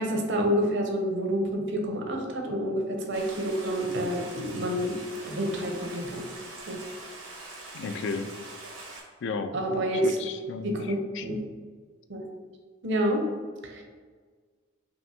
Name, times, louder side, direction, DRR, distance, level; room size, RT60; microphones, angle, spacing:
voice 1, 0.0-5.0 5.3-6.3 6.7-6.8 9.5-10.1 10.6-11.4 12.1-12.3 12.8-13.3 13.6-13.8, equal, 55° right, 2 dB, 0.7 m, -28 dB
Stream, 3.1-9.0, right 2 dB, 85° right, 1.1 m, -43 dB
voice 2, 7.7-8.3 9.2-9.6 10.0-11.4, left 4 dB, 55° left, 8 dB, 0.3 m, -34 dB
5.5 x 2.6 x 2.7 m, 1.5 s
head